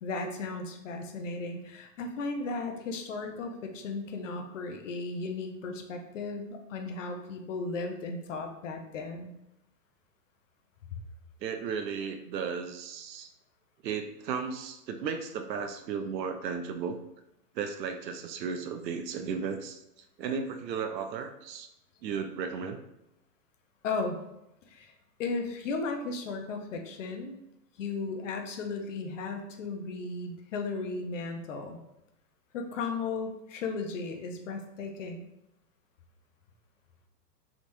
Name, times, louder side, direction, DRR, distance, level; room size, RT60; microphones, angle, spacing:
voice 1, 0.0-9.3 23.8-24.2 24.7-24.9 25.2-27.4 27.8-31.8 32.5-35.2, left 3 dB, 50° left, 4 dB, 0.6 m, -35 dB
voice 2, 11.4-13.3 13.8-17.0 17.5-19.8 20.2-21.7 22.0-22.8, right 6 dB, 80° right, 6 dB, 0.6 m, -35 dB
3.6 x 2.9 x 2.6 m, 0.86 s
hypercardioid pair, 150°, 49 cm